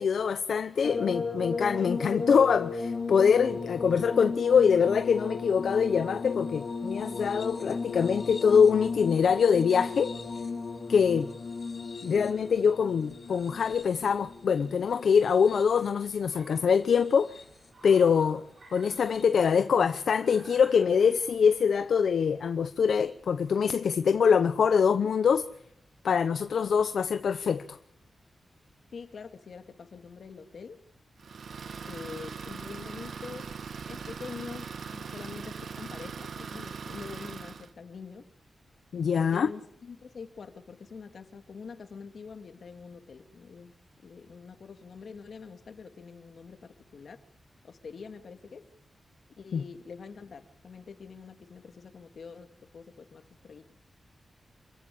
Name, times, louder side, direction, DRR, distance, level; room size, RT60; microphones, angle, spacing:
voice 1, 0.0-10.1 10.9-11.3 12.0-17.3 17.8-18.4 18.7-25.5 26.0-27.8 38.9-39.5 49.5-49.6, left 6 dB, 85° left, 0.8 m, -24 dB
sound 1, 0.8-16.1 16.9-17.7 19.1-19.2, left 4 dB, 45° left, 4.0 m, -36 dB
Car, 13.0-25.0, right 2 dB, 50° right, 7.7 m, -58 dB
voice 2, 28.9-30.8 31.9-33.5 33.9-38.3 39.1-43.7 44.0-47.2 47.6-48.7 49.4-53.7, left 5 dB, 65° left, 2.5 m, -45 dB
Idling, 31.2-37.7, right 5 dB, 75° right, 1.4 m, -40 dB
27.5 x 15.0 x 8.5 m
wide cardioid pair, 135°, 0 cm